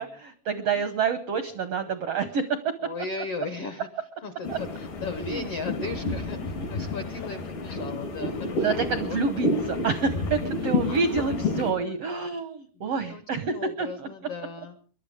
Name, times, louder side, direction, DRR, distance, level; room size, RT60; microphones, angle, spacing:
voice 1, 0.0-2.6 4.5-4.6 5.2-5.5 7.2-7.3 8.6-14.1, right 5 dB, 85° right, 10 dB, 1.3 m, -28 dB
voice 2, 2.8-3.9 4.2-9.2 10.6-12.0 12.7-14.8, left 4 dB, 75° left, 9 dB, 1.3 m, -37 dB
sound 1, 4.4-11.7, left 2 dB, 90° left, 5.5 m, -30 dB
23.5 x 12.0 x 5.1 m, 0.42 s
omnidirectional pair, 4.2 m